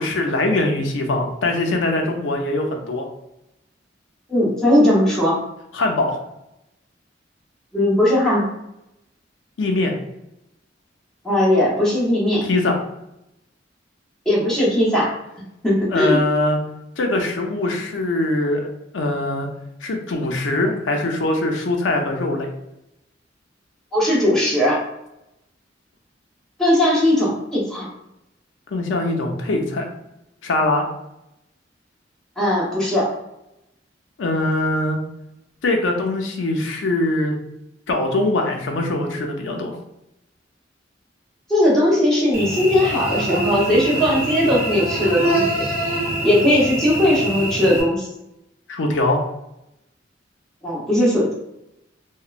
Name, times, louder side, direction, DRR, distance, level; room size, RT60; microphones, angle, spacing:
voice 1, 0.0-3.1 5.7-6.2 9.6-10.0 12.4-12.8 15.9-16.6 17.0-18.7 18.9-19.5 19.8-22.5 28.7-29.9 30.4-30.9 34.2-35.0 35.6-37.4 37.9-39.8 48.7-49.2, left 2 dB, 85° left, 2 dB, 0.5 m, -22 dB
voice 2, 4.3-5.4 7.7-8.5 11.2-12.4 14.3-15.1 15.6-16.2 23.9-24.8 26.6-27.9 32.4-33.1 41.5-45.7 46.2-48.1 50.6-51.3, left 1 dB, 5° left, -7 dB, 0.8 m, -18 dB
Cricket / Buzz, 42.3-47.8, right 1 dB, 55° right, 0.8 m, -24 dB
2.9 x 2.1 x 2.4 m, 0.86 s
head